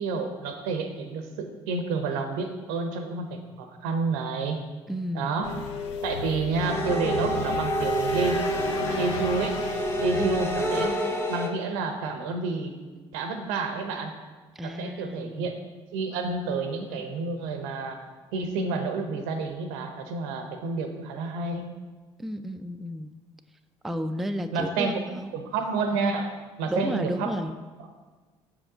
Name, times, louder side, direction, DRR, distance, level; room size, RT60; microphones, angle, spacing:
voice 1, 0.0-4.6 5.1-5.6 6.0-8.4 8.9-9.6 10.0-11.0 11.3-12.8 13.1-14.1 14.6-15.6 15.9-21.7 24.5-26.3 26.6-27.4 27.8-27.9, right 4 dB, 75° right, 6 dB, 0.7 m, -30 dB
voice 2, 4.9-5.3 10.2-10.3 10.6-10.9 14.6-15.5 22.2-23.1 23.8-25.3 26.7-27.5, equal, ahead, 7 dB, 0.3 m, -32 dB
sound 1, 5.4-10.9, left 6 dB, 85° left, 0.4 m, -33 dB
sound 2, 6.6-11.5, right 1 dB, 15° left, 0.9 m, -28 dB
5.8 x 4.8 x 3.8 m, 1.3 s
hypercardioid pair, 60°, 15 cm